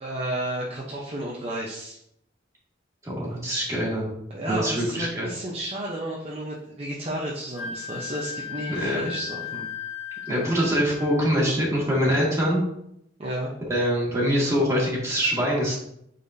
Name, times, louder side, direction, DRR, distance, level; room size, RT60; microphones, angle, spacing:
voice 1, 0.0-2.0 4.3-9.7 10.3-10.7 13.2-13.5, right 1 dB, 35° right, -4 dB, 0.8 m, -32 dB
voice 2, 3.0-4.1 4.5-5.3 8.7-9.1 10.3-12.6 13.7-15.7, equal, 15° right, -5 dB, 2.0 m, -24 dB
Wind instrument woodwind instrument, 7.5-11.3, left 7 dB, 55° left, 1.8 m, -36 dB
8.4 x 4.2 x 2.7 m, 0.76 s
head